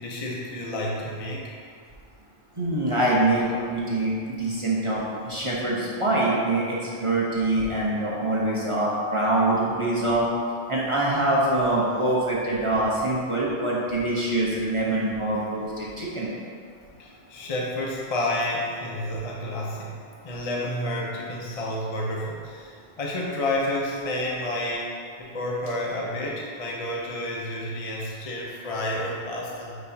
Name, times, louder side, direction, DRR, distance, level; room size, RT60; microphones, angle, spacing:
voice 1, 0.0-1.5 16.9-19.9 20.2-29.8, left 1 dB, 35° left, -3 dB, 0.7 m, -30 dB
voice 2, 2.6-10.2 10.7-16.3, right 2 dB, 30° right, -6 dB, 0.9 m, -24 dB
9.8 x 4.3 x 2.8 m, 2.2 s
omnidirectional pair, 1.2 m